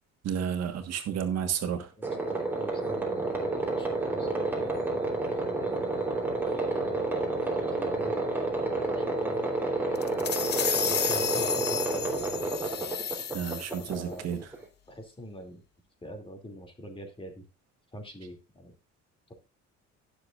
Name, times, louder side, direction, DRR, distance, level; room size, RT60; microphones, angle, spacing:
voice 1, 0.2-1.9 13.3-14.4, right 8 dB, 60° right, 1.6 m, -31 dB
voice 2, 2.0-5.1 5.4-6.2 6.8-8.2 8.7-9.4 10.7-12.2 13.9-14.3 14.9-15.6 16.0-17.4 17.9-18.7, equal, 15° left, 2.6 m, -44 dB
sound 1, 2.0-14.6, right 2 dB, 5° right, 3.3 m, -30 dB
sound 2, 10.0-14.0, left 8 dB, 35° left, 0.7 m, -32 dB
17.0 x 6.9 x 2.5 m
cardioid pair, 115°, 30 cm